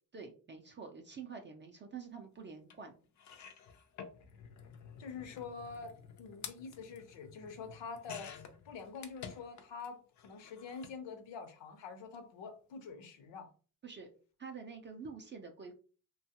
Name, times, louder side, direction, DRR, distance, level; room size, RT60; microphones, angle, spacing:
voice 1, 0.1-2.9 13.8-14.1 14.4-15.7, right 5 dB, 25° right, 2 dB, 0.4 m, -47 dB
sound 1, 2.7-2.8 3.2-9.9 10.2-11.0 12.0-12.2 12.4-12.5, left 7 dB, 40° left, 0.4 m, -51 dB
voice 2, 5.0-5.9 6.2-13.5, left 5 dB, 70° left, 7 dB, 0.8 m, -46 dB
2.9 x 2.3 x 2.8 m, 0.38 s
cardioid pair, 140°, 46 cm